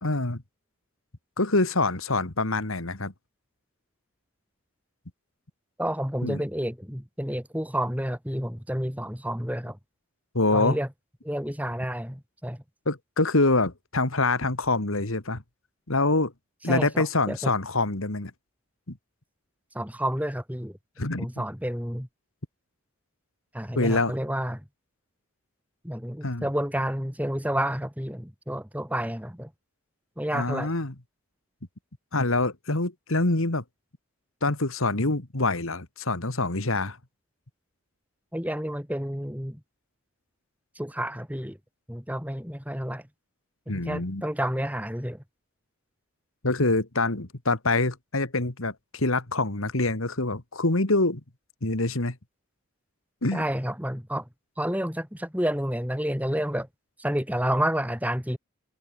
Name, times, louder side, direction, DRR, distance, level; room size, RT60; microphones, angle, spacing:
voice 1, 0.0-0.4 1.4-3.1 6.2-6.4 10.3-10.8 12.9-15.4 15.9-16.3 16.6-18.3 18.9-19.0 21.0-21.3 23.8-24.1 26.2-26.5 30.3-30.9 32.1-33.6 34.4-37.0 43.7-44.2 46.4-51.2 51.6-52.2 53.2-53.4, left 2 dB, 70° left, 2.2 m, -25 dB
voice 2, 5.8-9.8 10.5-10.9 11.2-12.6 16.7-17.5 19.7-20.8 21.2-22.1 23.5-24.6 25.8-29.5 30.2-30.7 38.3-39.6 40.7-41.6 41.9-43.1 43.7-45.2 53.3-54.3 54.6-56.7 57.0-58.4, equal, 5° right, 4.6 m, -30 dB
head